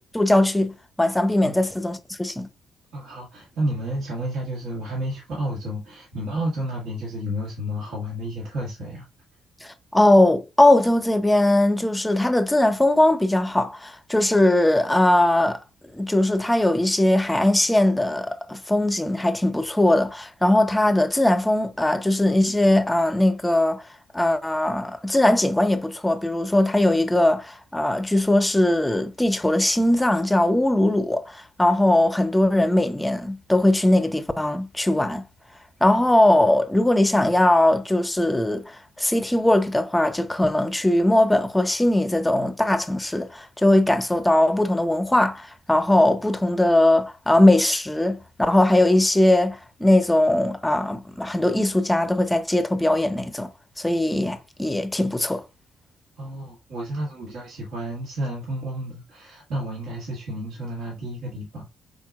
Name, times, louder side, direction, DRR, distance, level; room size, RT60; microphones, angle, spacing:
voice 1, 0.0-2.5 9.6-15.6 15.9-23.9 24.1-35.2 35.8-53.5 53.8-55.4, left 1 dB, 10° left, 0.5 m, -20 dB
voice 2, 2.9-9.0 56.2-61.7, equal, 80° right, 1.5 m, -31 dB
4.5 x 3.7 x 2.3 m
cardioid pair, 90°, 0 cm